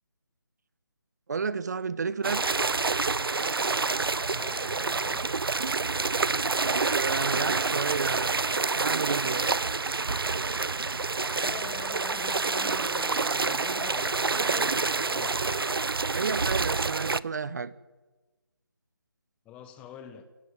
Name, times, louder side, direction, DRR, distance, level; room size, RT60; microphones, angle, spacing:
voice 1, 1.3-2.4 6.7-9.5 16.1-17.7, right 5 dB, 45° right, 1.2 m, -32 dB
sound 1, 2.2-17.2, right 4 dB, 70° right, 0.8 m, -28 dB
voice 2, 4.3-5.4 11.3-15.4 19.4-20.3, left 8 dB, 10° left, 1.2 m, -45 dB
29.0 x 14.0 x 9.7 m
figure-of-eight pair, 155°, 13 cm